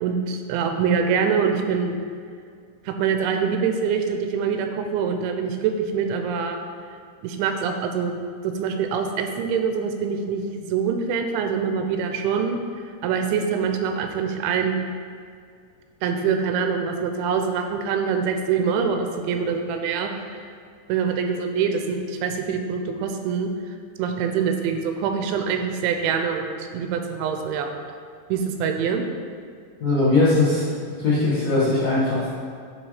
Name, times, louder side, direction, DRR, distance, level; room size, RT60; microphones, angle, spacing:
voice 1, 0.0-2.0 2.9-6.6 7.2-12.6 12.8-14.8 16.0-20.4 20.9-27.7 28.3-29.0, right 6 dB, 85° right, 5 dB, 2.9 m, -25 dB
voice 2, 29.8-30.6 31.0-32.3, left 2 dB, 60° left, -11 dB, 1.7 m, -20 dB
10.0 x 3.4 x 4.8 m, 2.2 s
omnidirectional pair, 5.2 m